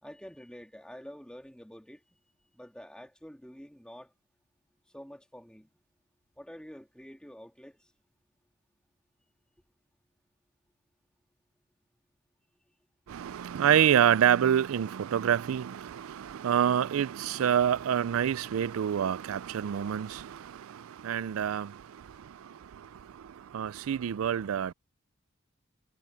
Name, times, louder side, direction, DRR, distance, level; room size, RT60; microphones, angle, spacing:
voice 1, 0.0-2.2 2.5-4.1 4.9-5.7 6.4-7.9, equal, 5° left, 1.9 m, -48 dB
voice 2, 13.1-24.7, right 9 dB, 90° right, 0.4 m, -27 dB
head